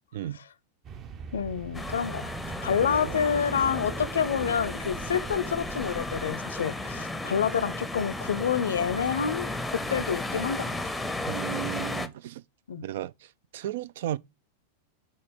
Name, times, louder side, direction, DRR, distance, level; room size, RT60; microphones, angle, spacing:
sound 1, 0.8-6.4, right 6 dB, 30° right, 0.8 m, -42 dB
voice 1, 1.3-2.3 2.6-10.7 12.7-12.8, left 7 dB, 65° left, 0.5 m, -28 dB
sound 2, 1.7-12.1, left 2 dB, 5° left, 0.7 m, -34 dB
sound 3, 2.8-11.5, right 1 dB, 80° right, 2.7 m, -48 dB
voice 2, 11.2-12.4 12.8-14.2, right 12 dB, 55° right, 0.3 m, -35 dB
5.5 x 4.0 x 5.1 m
figure-of-eight pair, 90°, 0 cm